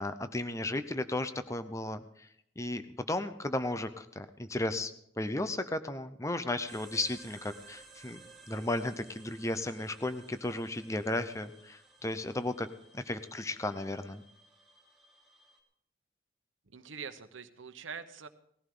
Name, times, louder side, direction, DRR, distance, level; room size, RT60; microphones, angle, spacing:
voice 1, 0.0-2.3 2.6-2.8 3.1-8.2 8.5-12.7 12.9-14.2, left 2 dB, 15° left, 10 dB, 0.7 m, -34 dB
sound 1, 6.7-15.6, right 3 dB, ahead, 3.3 m, -57 dB
voice 2, 16.7-18.3, right 6 dB, 90° right, 9 dB, 1.0 m, -44 dB
19.0 x 15.0 x 3.8 m, 0.70 s
head